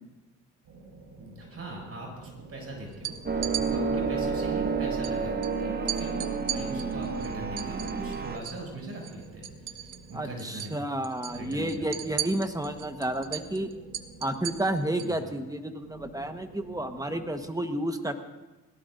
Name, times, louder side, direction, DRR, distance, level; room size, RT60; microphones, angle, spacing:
sound 1, 0.6-4.8 5.9-10.6 11.2-15.2 15.8-17.5, right 3 dB, 85° right, 5.3 m, -50 dB
voice 1, 1.2-5.3 5.6-10.8 11.3-12.0 15.0-15.3, right 2 dB, 45° right, -1 dB, 6.8 m, -41 dB
sound 2, 2.9-3.7 5.0-5.1 5.4-5.5 5.9-8.7 8.9-10.1 10.4-10.7 11.0-15.2, right 12 dB, 65° right, 0.9 m, -36 dB
sound 3, 3.3-8.4, right 4 dB, 30° right, 1.3 m, -30 dB
voice 2, 10.1-13.7 14.2-18.1, right 1 dB, 10° right, 7 dB, 1.3 m, -31 dB
21.0 x 18.0 x 2.7 m, 1.1 s
cardioid pair, 85°, 33 cm